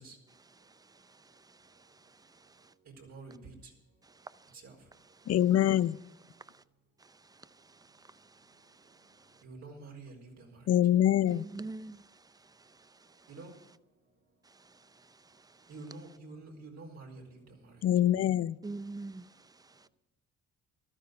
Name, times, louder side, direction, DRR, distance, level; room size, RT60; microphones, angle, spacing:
voice 1, 0.3-2.7 4.0-4.5 4.9-5.3 6.3-6.6 7.0-9.4 11.3-13.4 14.4-15.7 18.6-19.9, right 3 dB, 15° right, 0.6 m, -49 dB
voice 2, 3.1-3.5 4.6-4.7 9.4-10.5 13.3-13.5 15.7-17.2, right 3 dB, 60° right, 4.6 m, -47 dB
voice 3, 5.3-6.0 10.7-11.4 17.8-18.6, left 11 dB, 55° left, 0.6 m, -24 dB
14.5 x 13.0 x 5.3 m
cardioid pair, 90°, 30 cm